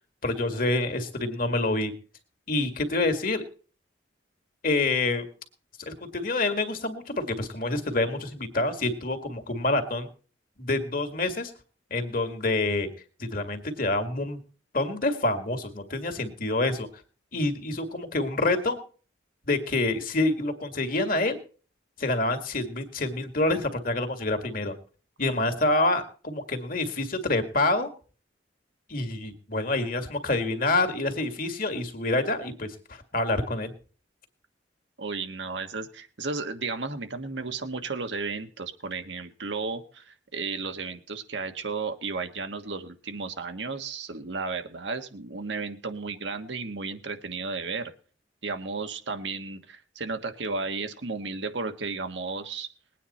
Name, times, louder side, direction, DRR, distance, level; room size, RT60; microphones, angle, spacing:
voice 1, 0.2-1.9 2.5-3.4 4.6-5.3 5.8-10.1 10.6-11.5 11.9-12.9 13.2-14.4 14.7-16.9 17.3-18.8 19.4-21.4 22.0-24.7 25.2-27.9 28.9-33.7, left 2 dB, 50° left, 8 dB, 2.0 m, -27 dB
voice 2, 35.0-47.9 48.4-52.7, right 4 dB, 80° right, 7 dB, 1.4 m, -33 dB
20.5 x 9.4 x 4.2 m, 0.39 s
head